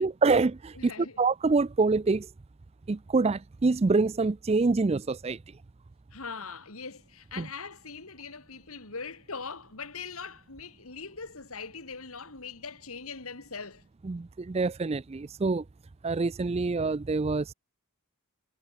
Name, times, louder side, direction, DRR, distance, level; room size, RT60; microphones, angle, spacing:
voice 1, 0.0-0.9 1.2-2.3 2.9-5.4 7.4-7.5 14.0-15.6 16.0-17.5, right 3 dB, 30° right, 0.4 m, -26 dB
voice 2, 0.7-1.2 6.1-13.8, left 5 dB, 80° left, 2.9 m, -41 dB
head